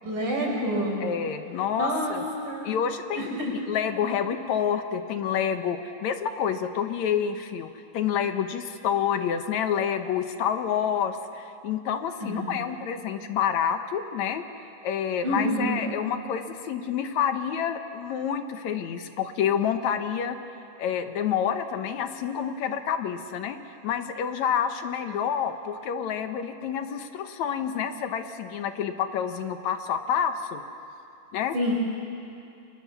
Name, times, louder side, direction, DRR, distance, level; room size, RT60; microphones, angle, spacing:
voice 1, 0.0-1.0 1.8-2.2 2.4-2.8 3.2-3.5 12.2-12.8 15.2-15.8 31.5-31.7, equal, 70° right, -2 dB, 7.1 m, -28 dB
voice 2, 1.0-2.2 2.6-3.3 3.7-7.7 7.9-14.4 14.8-20.4 20.8-30.6 31.3-31.5, left 8 dB, 65° left, 8 dB, 2.2 m, -28 dB
29.0 x 24.0 x 7.1 m, 2.7 s
omnidirectional pair, 3.7 m